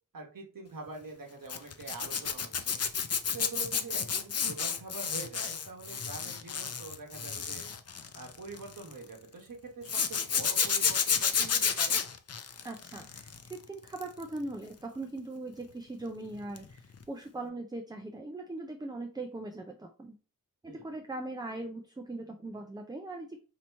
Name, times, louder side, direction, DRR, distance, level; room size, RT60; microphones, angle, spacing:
voice 1, 0.1-2.8 3.3-7.7 8.1-12.0 20.7-20.9, right 3 dB, 70° right, 1 dB, 1.1 m, -45 dB
Zipper (clothing), 1.5-8.9 9.9-13.5 13.9-14.2 16.6-16.7 17.0-17.1, left 6 dB, 45° left, 0.4 m, -31 dB
voice 2, 12.6-20.1 20.6-23.4, right 2 dB, 10° right, 3 dB, 0.4 m, -40 dB
2.9 x 2.7 x 4.4 m, 0.37 s
wide cardioid pair, 90°, 34 cm